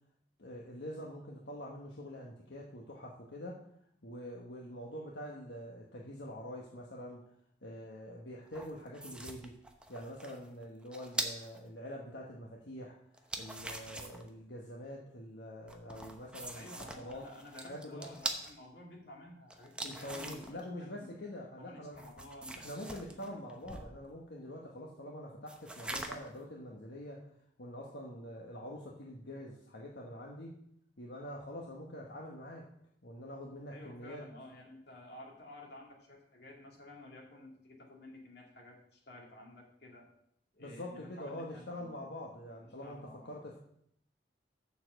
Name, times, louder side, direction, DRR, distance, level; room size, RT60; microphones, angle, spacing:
voice 1, 0.4-3.6 4.0-7.2 7.6-9.5 9.9-12.9 13.4-17.2 17.6-18.1 19.8-22.0 22.6-27.2 27.6-30.6 31.0-32.6 33.0-34.2 40.6-43.0 43.2-43.6, left 1 dB, 85° left, -2 dB, 1.3 m, -45 dB
sound 1, 8.5-11.6 13.1-14.3 15.7-18.5 19.5-20.6 21.9-23.9 25.5-26.4, right 1 dB, 5° right, 0.8 m, -42 dB
voice 2, 16.5-21.2 21.6-23.4 33.7-40.1 40.5-42.0 42.8-43.3, left 1 dB, 65° left, -1 dB, 2.5 m, -52 dB
7.3 x 6.8 x 6.5 m, 0.72 s
head